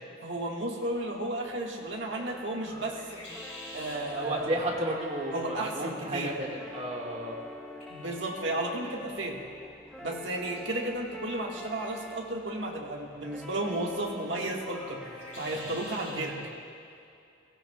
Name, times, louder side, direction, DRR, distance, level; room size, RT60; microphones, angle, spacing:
voice 1, 0.2-3.2 3.7-4.6 5.3-6.3 7.9-9.4 10.0-15.0 15.4-16.4, right 1 dB, 70° right, -1 dB, 1.4 m, -33 dB
sound 1, 0.8-16.2, left 1 dB, 35° left, 3.3 m, -51 dB
sound 2, 2.2-16.4, left 1 dB, 5° left, 0.7 m, -46 dB
voice 2, 4.1-7.4, right 1 dB, 35° right, -2 dB, 1.6 m, -32 dB
16.5 x 16.5 x 2.2 m, 2.5 s
head